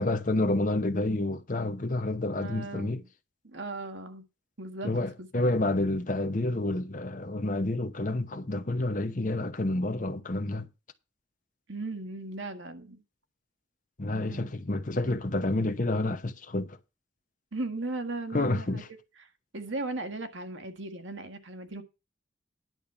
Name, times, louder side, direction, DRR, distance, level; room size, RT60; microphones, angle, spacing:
voice 1, 0.0-3.0 4.8-10.7 14.0-16.8 18.3-18.9, left 2 dB, 45° left, 0.9 m, -29 dB
voice 2, 2.3-3.1 3.4-4.2 4.6-4.9 5.2-5.4 11.7-13.0 14.3-14.5 17.5-18.8 19.2-21.8, right 2 dB, 80° right, 1.6 m, -37 dB
11.0 x 5.6 x 6.8 m
head